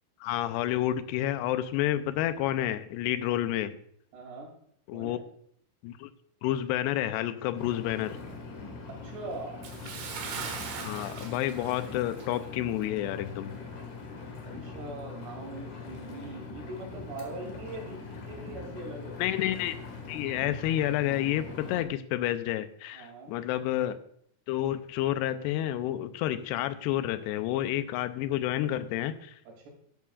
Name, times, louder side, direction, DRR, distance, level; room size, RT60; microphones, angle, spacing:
voice 1, 0.2-3.8 4.9-5.2 5.8-6.1 6.4-8.2 10.8-13.6 19.2-19.8 20.1-24.0 24.5-29.4, left 13 dB, 85° left, 12 dB, 2.7 m, -30 dB
voice 2, 4.1-4.5 4.9-5.2 8.9-9.6 14.6-19.1 22.9-23.3 29.6-29.7, right 2 dB, 80° right, 0 dB, 4.9 m, -41 dB
Engine, 7.6-21.8, left 4 dB, 55° left, 2.9 m, -42 dB
Bathtub (filling or washing) / Splash splatter, 9.6-12.5 12.8-13.0 13.6-13.7, right 5 dB, 60° right, 2.0 m, -40 dB
12.0 x 11.0 x 2.4 m, 0.66 s
omnidirectional pair, 4.8 m